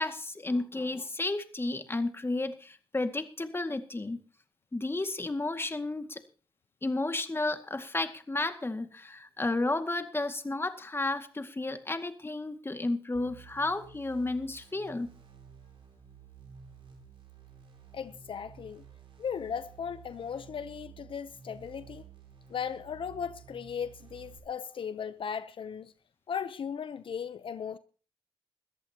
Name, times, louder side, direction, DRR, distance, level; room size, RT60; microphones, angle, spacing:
voice 1, 0.0-4.2 4.7-6.2 6.8-15.1, left 2 dB, 25° left, 2.1 m, -32 dB
sound 1, 13.1-24.4, right 7 dB, 90° right, 4.6 m, -53 dB
voice 2, 17.9-18.8 19.2-22.0 22.5-25.9 26.3-27.8, left 7 dB, 75° left, 0.7 m, -37 dB
21.5 x 14.0 x 2.9 m
cardioid pair, 80°, 9 cm